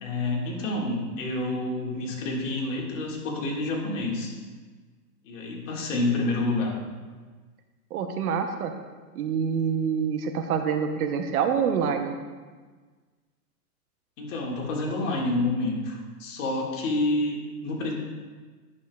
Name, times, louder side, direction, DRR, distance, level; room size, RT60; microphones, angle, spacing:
voice 1, 0.0-4.3 5.2-6.7 14.2-17.9, left 2 dB, 50° left, -2 dB, 1.9 m, -28 dB
voice 2, 7.9-8.7 9.1-12.2, right 7 dB, 65° right, 6 dB, 0.9 m, -26 dB
9.6 x 7.0 x 2.3 m, 1.4 s
hypercardioid pair, 155°, 47 cm